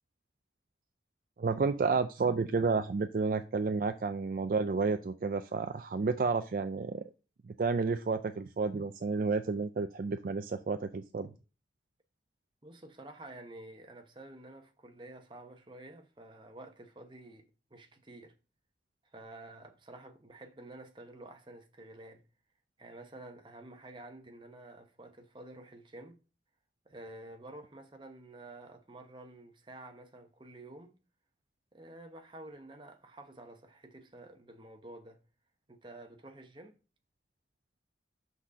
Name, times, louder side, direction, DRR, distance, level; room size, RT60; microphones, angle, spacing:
voice 1, 1.4-7.0 7.5-11.3, right 4 dB, 50° right, 0.4 m, -31 dB
voice 2, 12.6-18.4 19.0-22.2 22.8-26.2 26.8-30.9 31.7-35.2 35.7-36.8, right 2 dB, 25° right, 0.9 m, -50 dB
5.9 x 4.1 x 6.3 m
head